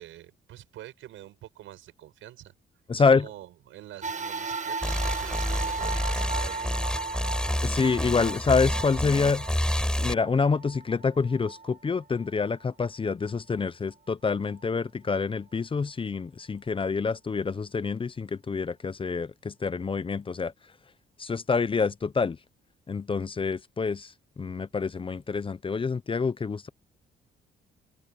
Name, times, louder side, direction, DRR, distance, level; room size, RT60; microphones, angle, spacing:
voice 1, 0.0-2.5 2.9-6.7, right 13 dB, 85° right, 6.5 m, -46 dB
voice 2, 2.9-3.2 7.6-9.4 10.0-20.5 21.2-22.4 22.9-24.1 24.4-26.7, left 5 dB, 25° left, 0.7 m, -27 dB
sound 1, 4.0-12.6 13.2-13.3 14.4-14.5, right 4 dB, 35° right, 1.7 m, -36 dB
sound 2, 4.8-10.1, left 1 dB, 5° left, 4.6 m, -29 dB
cardioid pair, 90°, 20 cm